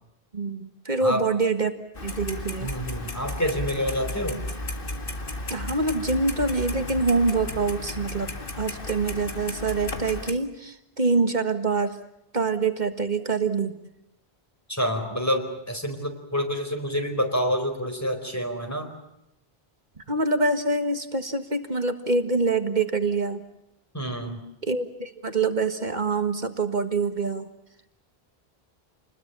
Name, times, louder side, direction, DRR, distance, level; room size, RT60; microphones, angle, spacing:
voice 1, 0.3-1.8 2.0-2.7 5.5-8.3 8.6-12.0 12.3-13.7 20.1-23.4 24.6-27.5, right 3 dB, 45° right, 8 dB, 1.8 m, -25 dB
Clock, 1.9-10.3, left 2 dB, 60° left, 2.1 m, -34 dB
voice 2, 2.6-4.4 14.7-18.9 23.9-24.4, equal, 15° left, 4 dB, 4.4 m, -28 dB
29.0 x 21.0 x 6.9 m, 0.84 s
omnidirectional pair, 1.0 m